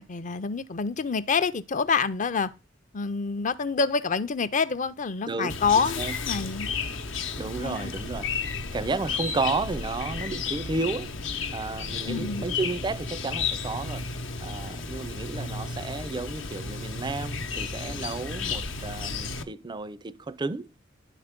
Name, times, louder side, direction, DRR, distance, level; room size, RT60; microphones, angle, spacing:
voice 1, 0.0-2.5 2.9-6.7 7.6-7.9 12.1-12.4, left 5 dB, 40° left, 0.5 m, -27 dB
voice 2, 5.2-6.1 7.4-8.3 8.7-11.1 11.5-14.1 14.4-20.7, right 3 dB, 25° right, 0.4 m, -32 dB
Chirp tweet, 5.5-19.4, left 4 dB, 80° left, 0.9 m, -33 dB
11.0 x 3.9 x 5.1 m
head